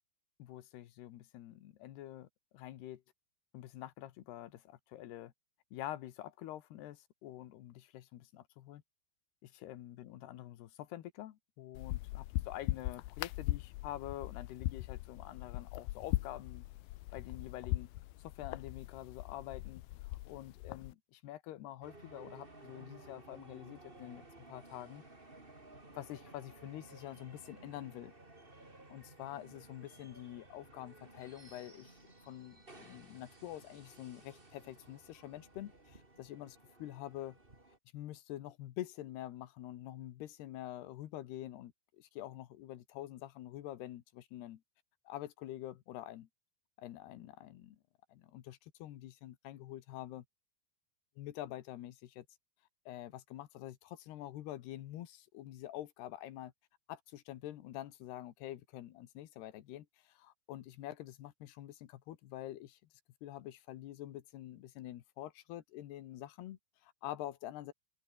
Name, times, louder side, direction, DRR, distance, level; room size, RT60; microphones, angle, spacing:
voice 1, 0.4-3.0 3.5-5.3 5.7-8.8 9.4-16.6 17.1-17.9 18.2-24.2 24.5-25.0 25.9-28.1 28.9-32.0 32.2-37.4 37.9-44.6 45.1-46.3 46.8-47.8 48.1-50.2 51.2-52.3 52.9-56.5 56.9-62.8 63.2-67.7, left 13 dB, 70° left, 3.3 m, -47 dB
sound 1, 11.7-20.9, left 19 dB, 90° left, 2.2 m, -40 dB
sound 2, 21.8-37.8, right 2 dB, 15° right, 3.4 m, -56 dB
omnidirectional pair, 5.1 m